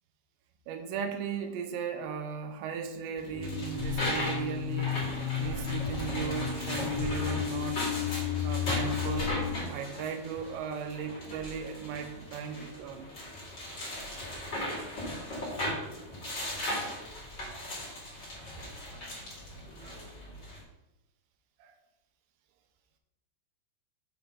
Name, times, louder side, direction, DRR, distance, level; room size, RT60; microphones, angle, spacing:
voice 1, 0.7-5.1 5.4-7.8 8.4-9.4 9.7-13.1 14.8-15.3 15.6-15.8 18.4-18.5 19.8-20.0 21.6-21.7, right 7 dB, 85° right, 4 dB, 3.0 m, -37 dB
sound 1, 3.2-20.6, left 1 dB, 35° left, 1.9 m, -38 dB
sound 2, 3.3-9.5, left 8 dB, 55° left, 0.9 m, -33 dB
6.8 x 5.9 x 3.7 m, 0.93 s
omnidirectional pair, 4.9 m